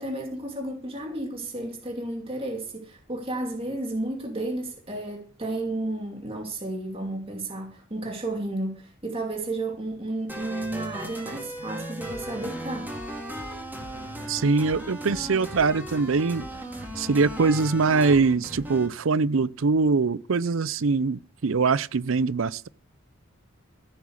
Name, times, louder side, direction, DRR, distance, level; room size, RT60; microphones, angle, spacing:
voice 1, 0.0-12.9, right 2 dB, 30° right, 2.6 m, -32 dB
sound 1, 10.3-18.9, right 1 dB, 10° right, 3.3 m, -37 dB
voice 2, 14.3-16.5 17.0-22.7, right 4 dB, 75° right, 0.6 m, -23 dB
16.0 x 7.2 x 6.5 m
head